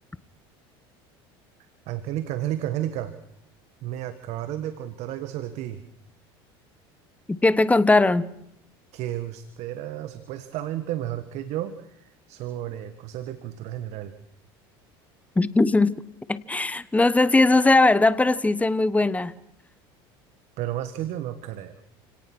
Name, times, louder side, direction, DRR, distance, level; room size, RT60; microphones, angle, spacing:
voice 1, 1.9-3.1 3.8-5.8 8.9-14.1 20.6-21.8, right 12 dB, 60° right, 1.8 m, -32 dB
voice 2, 7.3-8.3 15.4-16.0 16.3-19.3, left 2 dB, 10° left, 1.2 m, -19 dB
29.0 x 18.0 x 6.3 m
supercardioid pair, 100°, 13 cm